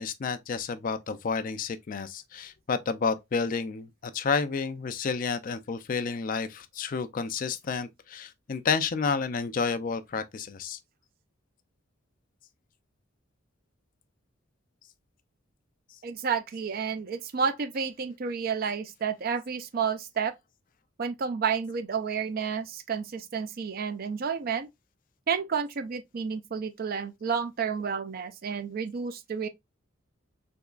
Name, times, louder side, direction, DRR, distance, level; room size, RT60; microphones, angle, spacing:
voice 1, 0.0-10.8, left 5 dB, 40° left, 0.4 m, -30 dB
voice 2, 16.0-20.3 21.0-24.7 25.3-29.5, right 6 dB, 45° right, 0.4 m, -30 dB
3.5 x 2.9 x 2.3 m
head